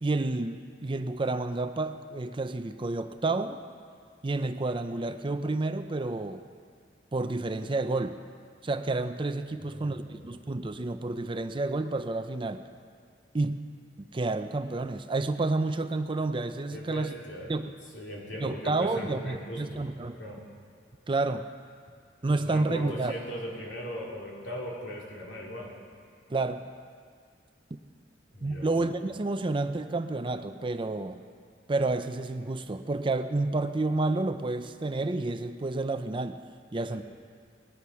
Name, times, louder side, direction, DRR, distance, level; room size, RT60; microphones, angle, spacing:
voice 1, 0.0-3.6 4.2-6.4 7.1-8.2 8.6-12.6 13.3-13.6 14.1-17.1 17.5-17.7 18.4-20.2 21.1-21.5 22.2-23.1 26.3-26.7 28.4-31.2 31.7-36.4 36.7-37.0, right 2 dB, 25° right, 9 dB, 0.5 m, -30 dB
voice 2, 9.6-10.2 16.7-17.5 17.9-20.4 22.3-25.7 28.3-28.7 36.9-37.0, equal, 75° left, -3 dB, 3.4 m, -39 dB
19.0 x 11.0 x 5.7 m, 2.1 s
head